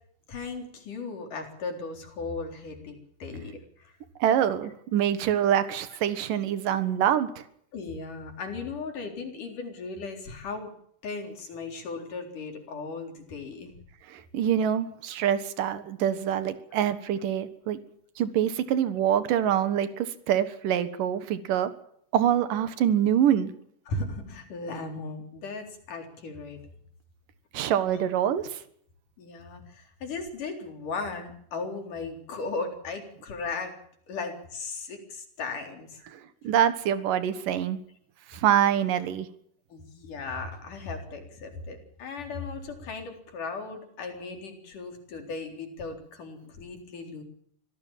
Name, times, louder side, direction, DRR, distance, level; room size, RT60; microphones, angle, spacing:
voice 1, 0.3-3.9 7.7-10.7 11.0-13.7 23.9-26.6 27.6-27.7 29.2-33.8 34.1-36.0 39.7-47.2, left 3 dB, 70° left, 4 dB, 5.5 m, -37 dB
voice 2, 4.2-7.4 14.1-17.8 18.2-21.7 22.1-23.5 27.5-28.6 36.1-36.2 36.4-37.8 38.3-39.3, right 10 dB, 85° right, 12 dB, 3.1 m, -25 dB
25.5 x 16.5 x 7.4 m, 0.67 s
omnidirectional pair, 3.7 m